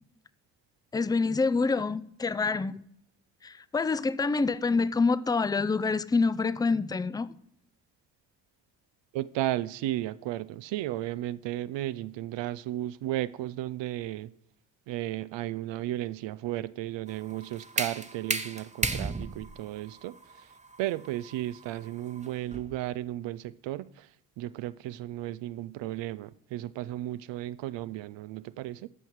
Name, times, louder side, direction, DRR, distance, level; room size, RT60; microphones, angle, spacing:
voice 1, 0.9-2.8 3.4-7.4, left 4 dB, 10° left, 0.4 m, -27 dB
voice 2, 9.1-14.3 14.9-20.5 20.8-24.1 24.4-28.9, right 14 dB, 70° right, 0.5 m, -34 dB
sound 1, 17.1-22.9, right 3 dB, 15° right, 0.9 m, -35 dB
13.5 x 5.6 x 4.6 m
hypercardioid pair, 40°, 45 cm